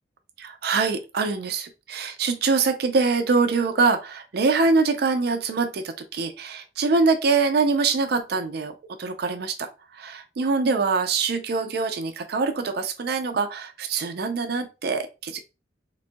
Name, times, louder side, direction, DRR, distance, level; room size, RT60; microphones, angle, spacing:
voice 1, 0.4-8.7 9.0-9.7 9.9-15.4, right 4 dB, 65° right, 7 dB, 0.4 m, -24 dB
4.0 x 2.5 x 2.2 m, 0.29 s
head